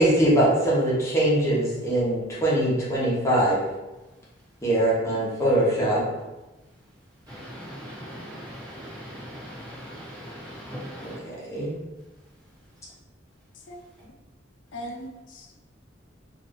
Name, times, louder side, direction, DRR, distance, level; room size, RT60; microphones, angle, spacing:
voice 1, 0.0-3.6 4.6-6.0 11.0-11.8, right 1 dB, 15° left, -7 dB, 1.0 m, -22 dB
voice 2, 7.3-11.2, equal, 20° right, -9 dB, 1.3 m, -40 dB
voice 3, 13.5-14.1 14.7-15.5, equal, 75° left, 1 dB, 0.5 m, -40 dB
2.6 x 2.6 x 3.5 m, 1.1 s
head